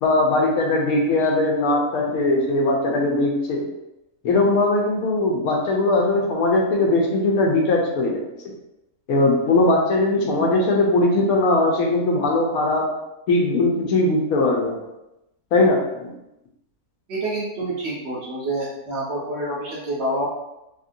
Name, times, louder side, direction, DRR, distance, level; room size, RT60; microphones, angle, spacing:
voice 1, 0.0-3.6 4.2-8.3 9.1-12.9 13.3-14.8 15.5-16.1, left 2 dB, 75° left, 0 dB, 1.1 m, -20 dB
voice 2, 17.1-20.3, right 1 dB, 60° right, -4 dB, 0.8 m, -27 dB
2.9 x 2.7 x 2.5 m, 0.91 s
omnidirectional pair, 1.6 m